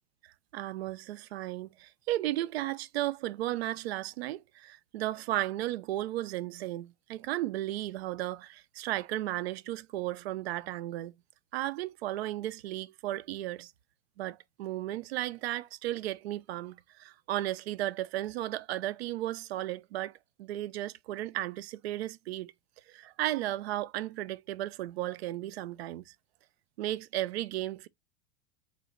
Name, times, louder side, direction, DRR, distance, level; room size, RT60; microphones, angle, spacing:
voice 1, 0.2-11.1 11.5-13.7 14.2-22.5 22.9-26.1 26.8-27.9, right 15 dB, 60° right, 0.5 m, -35 dB
4.0 x 2.8 x 4.2 m
figure-of-eight pair, 85°, 36 cm